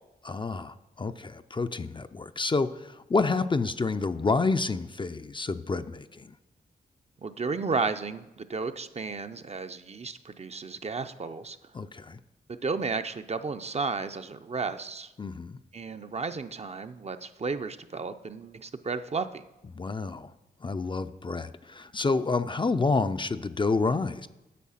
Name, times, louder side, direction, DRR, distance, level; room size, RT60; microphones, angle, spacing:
voice 1, 0.2-6.3 11.7-12.2 15.2-15.6 19.7-20.3 20.6-24.3, left 3 dB, 25° left, 10 dB, 0.4 m, -29 dB
voice 2, 7.2-11.6 12.6-15.1 15.7-19.4, right 4 dB, 35° right, 9 dB, 0.5 m, -33 dB
8.4 x 6.8 x 5.7 m, 1.0 s
cardioid pair, 60°, 18 cm